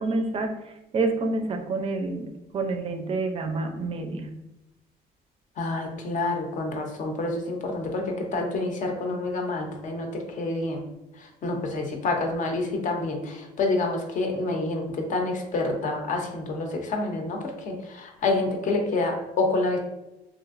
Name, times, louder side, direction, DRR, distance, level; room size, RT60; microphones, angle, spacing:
voice 1, 0.0-4.4, right 3 dB, 35° right, 5 dB, 0.4 m, -28 dB
voice 2, 5.6-10.8 11.4-19.8, left 2 dB, 50° left, 3 dB, 0.5 m, -28 dB
3.0 x 2.4 x 2.4 m, 0.95 s
cardioid pair, 110°, 17 cm